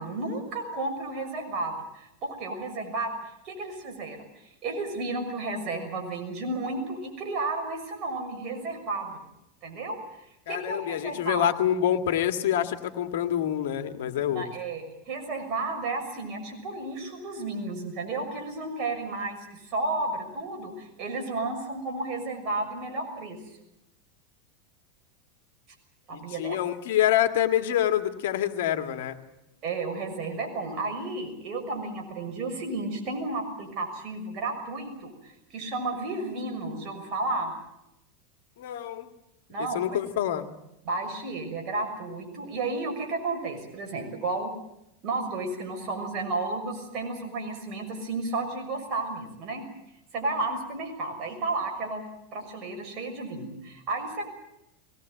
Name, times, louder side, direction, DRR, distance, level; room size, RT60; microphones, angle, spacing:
voice 1, 0.0-3.2 3.4-4.3 4.6-9.2 9.6-10.0 10.5-11.5 14.3-23.4 26.1-26.6 29.6-37.5 39.5-40.0 40.8-44.5 45.0-49.6 50.1-52.1 52.3-54.2, right 3 dB, 45° right, 4 dB, 6.3 m, -32 dB
voice 2, 10.5-14.4 26.1-29.2 38.6-39.1 39.6-40.5, left 11 dB, 70° left, 8 dB, 2.0 m, -26 dB
21.5 x 18.5 x 9.2 m, 0.85 s
hypercardioid pair, 100°, 0 cm